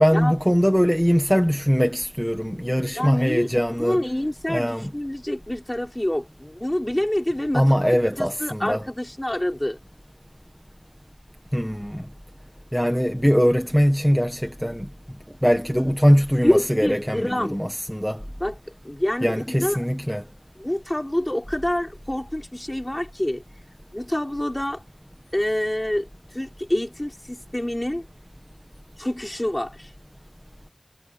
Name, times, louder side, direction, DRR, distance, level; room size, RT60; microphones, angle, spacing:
voice 1, 0.0-4.0 4.5-4.9 7.5-8.9 11.5-12.0 12.7-14.9 15.4-18.2 19.2-20.2, equal, 5° left, 1.5 m, -21 dB
voice 2, 3.0-3.5 3.8-7.7 8.2-9.8 16.4-17.6 18.4-18.5 18.8-19.8 20.6-23.4 23.9-24.8 25.3-28.1 29.0-29.9, left 1 dB, 25° left, 5.5 m, -26 dB
wide cardioid pair, 40°, 0 cm